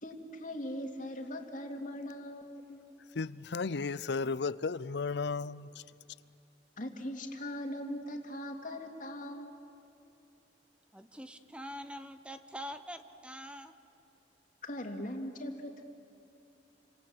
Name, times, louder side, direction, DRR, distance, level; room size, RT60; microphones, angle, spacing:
voice 1, 0.0-2.8 6.8-9.5 14.6-15.8, left 1 dB, 50° left, 2.6 m, -40 dB
voice 2, 3.1-5.8, left 4 dB, 70° left, 0.6 m, -34 dB
voice 3, 10.9-13.7, equal, 5° right, 1.0 m, -44 dB
29.5 x 25.5 x 7.9 m
head